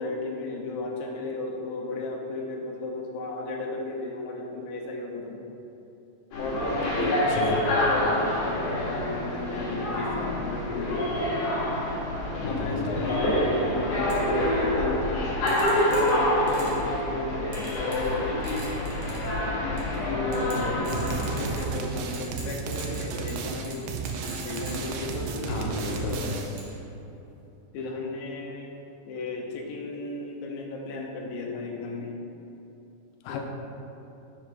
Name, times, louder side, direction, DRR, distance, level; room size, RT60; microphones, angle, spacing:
voice 1, 0.0-5.4 6.4-11.1 12.4-15.3 15.8-18.8 19.9-23.9 24.4-25.8 27.7-28.8 29.1-32.1 33.3-33.4, left 3 dB, 70° left, -1 dB, 1.9 m, -34 dB
sound 1, 6.3-21.7, left 1 dB, 55° left, 2.2 m, -27 dB
voice 2, 7.0-7.6 12.4-13.1 20.5-20.8 25.4-26.5 33.2-33.4, left 5 dB, 85° left, 2 dB, 2.3 m, -34 dB
sound 2, 14.1-14.2 15.5-16.9 17.5-18.2 18.4-19.3 19.8-20.0 20.3-21.8 22.1-25.5 25.9-26.7, right 3 dB, 55° right, 2.1 m, -43 dB
sound 3, 20.9-26.7, right 5 dB, 80° right, 1.8 m, -33 dB
6.3 x 4.9 x 5.4 m, 3.0 s
omnidirectional pair, 3.9 m